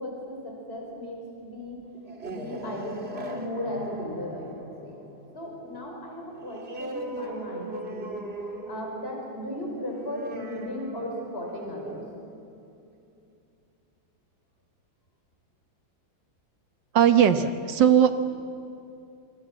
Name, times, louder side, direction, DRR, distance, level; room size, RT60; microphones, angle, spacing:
voice 1, 0.0-1.8 2.2-4.5 4.8-5.0 5.3-8.2 8.7-12.0, left 1 dB, 30° left, 0 dB, 5.5 m, -36 dB
sound 1, 1.9-13.2, right 1 dB, 30° right, 1.8 m, -40 dB
voice 2, 16.9-18.2, right 9 dB, 65° right, 9 dB, 1.7 m, -19 dB
25.5 x 25.0 x 7.7 m, 2.5 s
omnidirectional pair, 2.2 m